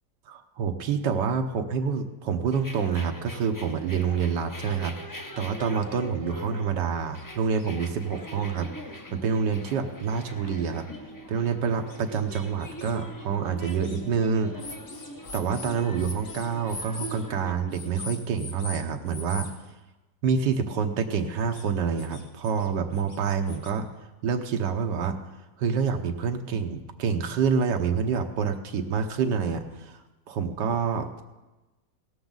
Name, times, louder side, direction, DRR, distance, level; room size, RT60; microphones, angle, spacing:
voice 1, 0.3-8.7 9.1-10.9 11.3-14.5 15.3-19.5 20.2-23.9 24.2-25.2 25.6-30.0 30.3-31.2, right 6 dB, 75° right, 5 dB, 1.6 m, -27 dB
sound 1, 2.5-17.5, left 1 dB, 30° left, 0.3 m, -43 dB
sound 2, 7.2-7.3 7.6-7.7 8.5-8.6 8.9-9.0 9.6-9.7 10.6-10.7 11.1-11.2 11.9-12.9 13.6-14.0 14.6-17.2 17.7-18.8 19.1-19.5 21.3-21.6 22.0-22.7 22.9-23.7, left 3 dB, 50° left, 2.1 m, -42 dB
17.0 x 13.5 x 4.0 m, 1.1 s
omnidirectional pair, 1.9 m